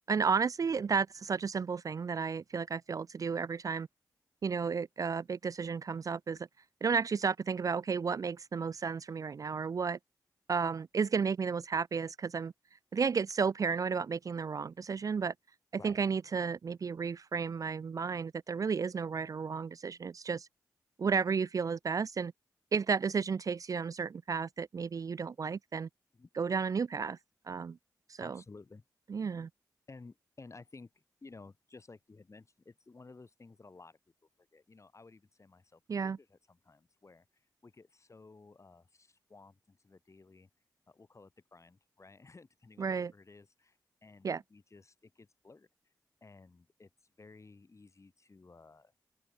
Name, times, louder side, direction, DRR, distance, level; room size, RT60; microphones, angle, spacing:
voice 1, 0.1-3.9 4.4-6.5 6.8-10.0 10.5-12.5 12.9-15.3 15.8-20.5 21.0-22.3 22.7-25.9 26.4-27.2 27.5-27.8 28.1-28.4 29.1-29.5 35.9-36.2 42.8-43.1 44.2-44.4, right 5 dB, 50° right, 0.4 m, -33 dB
voice 2, 28.2-28.8 29.9-34.0 34.4-40.5 40.9-45.7 46.2-48.9, left 3 dB, 40° left, 7.0 m, -55 dB
open air
cardioid pair, 55°, 8 cm